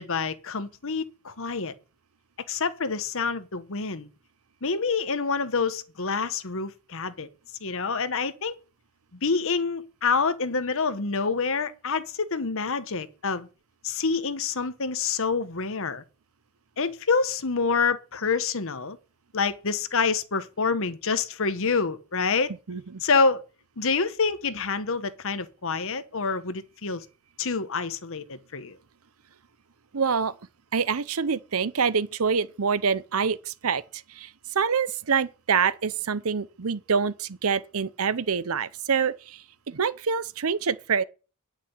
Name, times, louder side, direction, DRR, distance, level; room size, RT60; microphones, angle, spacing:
voice 1, 0.0-1.7 2.5-4.1 4.6-7.3 7.6-8.5 9.2-13.5 13.8-16.0 16.8-19.0 19.3-22.5 23.0-23.4 23.8-27.0 27.4-28.8, left 4 dB, 65° left, 1.2 m, -27 dB
voice 2, 22.7-23.0 29.9-30.3 30.7-34.3 34.5-41.0, right 6 dB, 70° right, 0.7 m, -26 dB
10.0 x 6.1 x 8.6 m
head